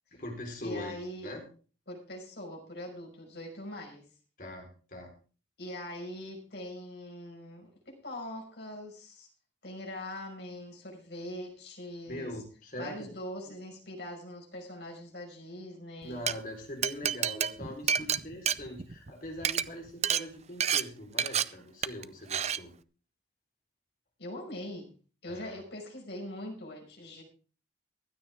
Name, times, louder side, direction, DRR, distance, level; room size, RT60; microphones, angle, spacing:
voice 1, 0.1-0.9 1.2-1.4 4.4-5.1 12.1-13.1 13.4-13.5 16.0-22.7 25.3-25.6, left 1 dB, 50° left, 2 dB, 4.2 m, -42 dB
voice 2, 0.6-1.3 1.9-4.0 5.6-9.3 9.6-12.3 12.8-16.3 24.2-24.9 25.2-27.2, left 1 dB, 70° left, 1 dB, 5.5 m, -42 dB
Glass, 16.0-16.3 16.8-19.1 19.4-19.6 20.0-20.2 20.6-20.8 21.2-21.4 21.8-22.0 22.3-22.6, right 8 dB, 35° right, 0.5 m, -28 dB
15.5 x 13.0 x 3.6 m, 0.38 s
head